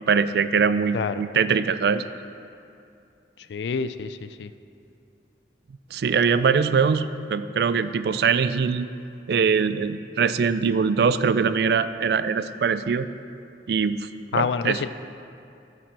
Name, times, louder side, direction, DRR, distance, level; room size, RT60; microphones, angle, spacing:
voice 1, 0.0-2.0 5.9-8.9 9.3-13.1 13.7-14.8, right 6 dB, 65° right, 13 dB, 0.3 m, -22 dB
voice 2, 3.5-4.5 14.3-14.9, left 5 dB, 80° left, 13 dB, 0.4 m, -27 dB
10.0 x 7.4 x 4.6 m, 2.5 s
head